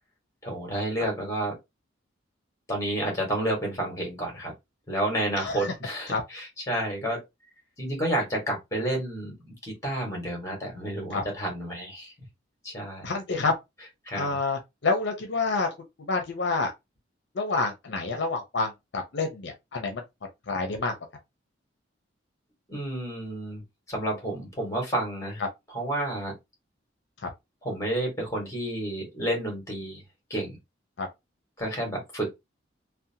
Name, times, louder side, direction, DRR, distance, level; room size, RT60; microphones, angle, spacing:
voice 1, 0.4-1.6 2.7-4.5 4.9-7.2 7.8-12.1 12.6-13.1 14.1-14.4 22.7-23.6 23.9-25.4 25.7-26.3 27.6-30.0 30.3-30.6 31.6-32.3, right 1 dB, 15° left, 1.3 m, -30 dB
voice 2, 5.4-5.7 6.1-6.2 11.1-11.2 13.0-13.5 14.1-16.7 17.3-20.0 20.5-20.9 27.2-27.3 31.0-31.1, left 3 dB, 65° left, 0.5 m, -28 dB
2.7 x 2.1 x 2.7 m
head